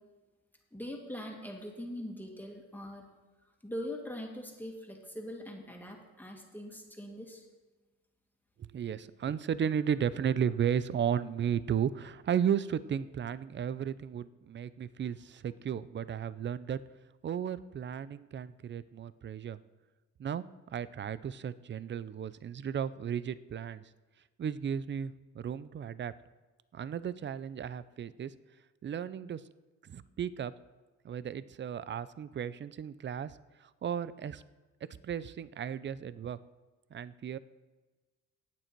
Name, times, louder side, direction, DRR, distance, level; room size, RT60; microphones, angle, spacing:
voice 1, 0.7-3.1 3.6-7.5, equal, 5° left, 0 dB, 2.3 m, -42 dB
voice 2, 8.6-16.8 17.2-19.6 20.2-23.8 24.4-26.1 26.7-28.3 28.8-29.4 29.8-30.5 31.0-34.4 35.0-36.4 36.9-37.4, right 8 dB, 40° right, 17 dB, 0.5 m, -34 dB
15.5 x 9.1 x 4.6 m, 1.3 s
cardioid pair, 90°, 30 cm